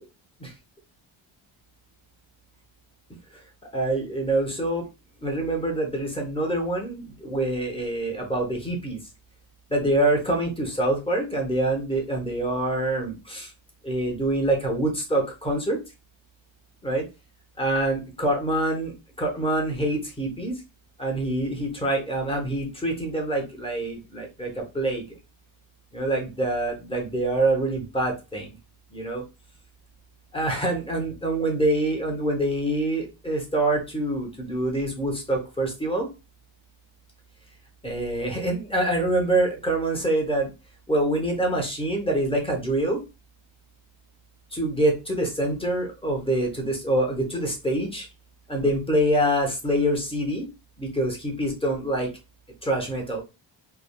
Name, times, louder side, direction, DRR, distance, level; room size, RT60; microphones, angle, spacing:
voice 1, 3.7-4.8 5.2-9.0 9.7-13.5 13.8-15.8 16.8-17.0 17.6-20.5 21.0-25.0 25.9-28.6 28.9-29.2 30.3-36.1 37.8-40.5 40.9-43.0 44.5-48.1 48.5-50.5 50.8-52.1 52.6-53.2, right 1 dB, 10° left, 1 dB, 0.7 m, -25 dB
3.2 x 2.3 x 2.2 m, 0.27 s
wide cardioid pair, 145°, 48 cm